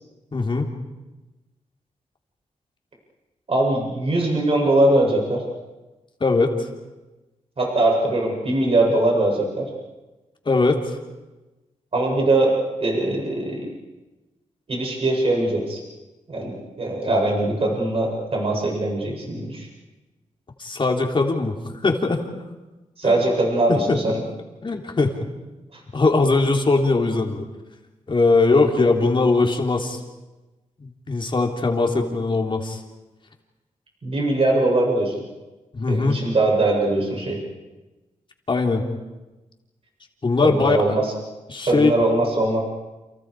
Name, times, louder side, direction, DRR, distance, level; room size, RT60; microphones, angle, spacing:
voice 1, 0.3-0.7 6.2-6.5 10.5-10.9 20.6-21.6 21.8-22.2 23.0-23.2 23.7-24.0 24.6-25.2 25.9-27.4 28.1-30.0 31.1-32.8 35.7-36.2 38.5-38.9 40.2-40.8 41.5-41.9, left 3 dB, 40° left, 2 dB, 3.6 m, -20 dB
voice 2, 3.5-5.4 7.6-9.7 11.9-13.7 14.7-15.8 16.3-19.7 23.0-24.2 25.7-25.8 34.0-35.1 35.9-37.4 40.4-41.1 41.7-42.6, right 2 dB, 45° right, -1 dB, 7.8 m, -21 dB
30.0 x 28.5 x 5.0 m, 1.1 s
wide cardioid pair, 95°, 13 cm